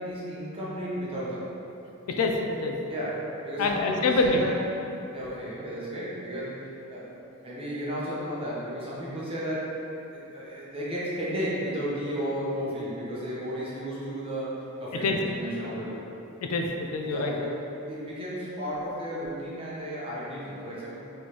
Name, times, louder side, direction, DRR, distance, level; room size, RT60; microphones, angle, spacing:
voice 1, 0.0-1.4 2.9-4.6 5.1-9.7 10.1-16.0 17.1-17.5 17.8-20.9, equal, 25° right, -8 dB, 0.9 m, -33 dB
voice 2, 2.1-2.7 3.6-4.4 15.0-15.2 16.4-17.3, left 3 dB, 75° left, 2 dB, 0.4 m, -26 dB
4.2 x 3.2 x 3.1 m, 2.9 s
head